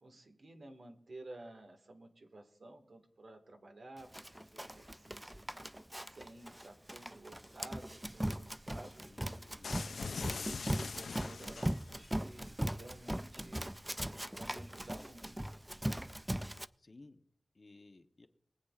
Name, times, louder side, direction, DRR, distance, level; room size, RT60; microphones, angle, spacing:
voice 1, 0.0-5.5 6.1-9.0 10.1-13.6 14.1-15.3, right 2 dB, 70° right, 4 dB, 1.7 m, -53 dB
Run, 4.1-16.7, right 1 dB, 10° right, 0.3 m, -39 dB
voice 2, 9.0-10.2 16.8-17.2 17.5-18.3, left 2 dB, 50° left, 7 dB, 0.9 m, -58 dB
sound 1, 9.6-12.1, left 5 dB, 85° left, 0.4 m, -42 dB
23.0 x 8.3 x 2.4 m, 0.69 s
wide cardioid pair, 60°, 0 cm